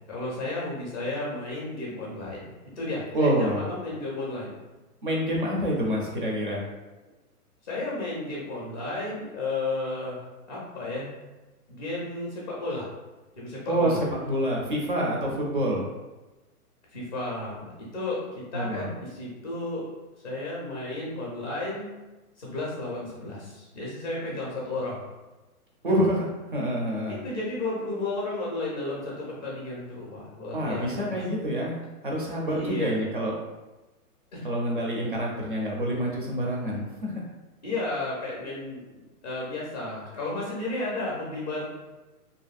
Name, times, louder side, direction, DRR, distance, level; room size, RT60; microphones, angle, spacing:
voice 1, 0.0-2.5 2.8-4.5 7.6-11.1 11.7-12.9 13.3-14.0 16.9-18.2 18.5-19.9 20.2-21.9 22.4-25.0 27.1-31.2 32.5-33.1 34.3-34.4 37.6-41.6, left 2 dB, 35° left, -4 dB, 0.5 m, -33 dB
voice 2, 3.1-3.7 5.0-6.7 13.7-15.9 18.5-18.9 25.8-27.2 30.5-31.8 32.0-33.3 34.4-37.2, equal, 35° right, -2 dB, 0.4 m, -27 dB
2.7 x 2.6 x 2.3 m, 1.1 s
hypercardioid pair, 160°, 46 cm